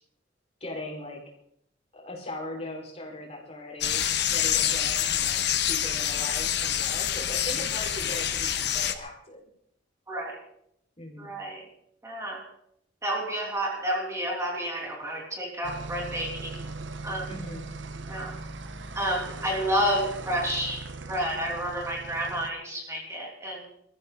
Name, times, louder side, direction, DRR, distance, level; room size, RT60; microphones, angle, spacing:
voice 1, 0.6-1.2 1.9-9.4 11.0-11.3 17.3-17.7, left 1 dB, 35° left, -1 dB, 4.9 m, -39 dB
sound 1, 3.8-8.9, left 10 dB, 60° left, 1.3 m, -27 dB
voice 2, 10.1-10.4 11.2-11.7 12.0-12.4 13.0-16.7 17.0-17.3 18.0-18.4 18.9-23.7, equal, 15° right, -2 dB, 2.9 m, -30 dB
sound 2, 15.6-22.5, right 3 dB, 70° right, 1.0 m, -39 dB
23.0 x 14.5 x 3.9 m, 0.72 s
head